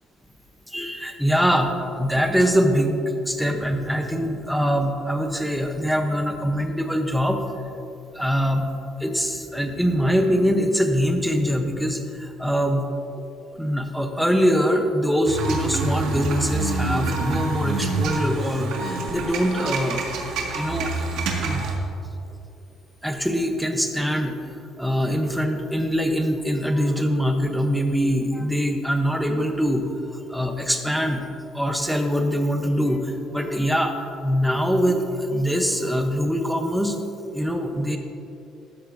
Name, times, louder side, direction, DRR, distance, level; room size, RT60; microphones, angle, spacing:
voice 1, 0.7-3.0 3.2-7.4 8.0-8.7 9.0-12.9 13.5-20.1 20.5-21.1 21.4-21.7 23.0-24.5 24.8-31.2 31.5-37.0 37.3-38.0, equal, ahead, 4 dB, 0.7 m, -23 dB
sound 1, 15.3-21.7, right 3 dB, 70° right, 1.7 m, -27 dB
13.0 x 12.5 x 2.6 m, 2.7 s
cardioid pair, 175°, 0 cm